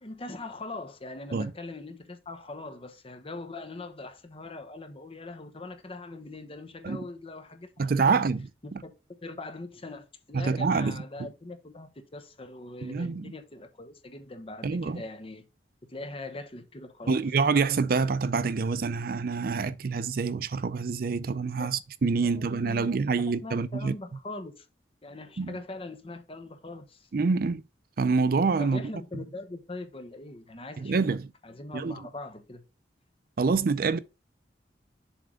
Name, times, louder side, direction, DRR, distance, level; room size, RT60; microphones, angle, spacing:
voice 1, 0.0-7.7 8.1-8.2 8.6-8.9 9.2-15.4 15.9-17.2 21.6-21.7 22.2-22.9 23.2-24.7 25.0-27.1 28.6-31.0 31.4-32.6, left 2 dB, 35° left, 0.9 m, -41 dB
voice 2, 7.8-8.5 10.3-11.0 12.8-13.3 14.6-15.0 17.1-23.9 25.4-25.5 27.1-27.6 28.0-28.8 30.8-31.3 31.7-31.9 33.4-34.0, right 4 dB, 55° right, 0.5 m, -26 dB
7.2 x 3.4 x 5.0 m
head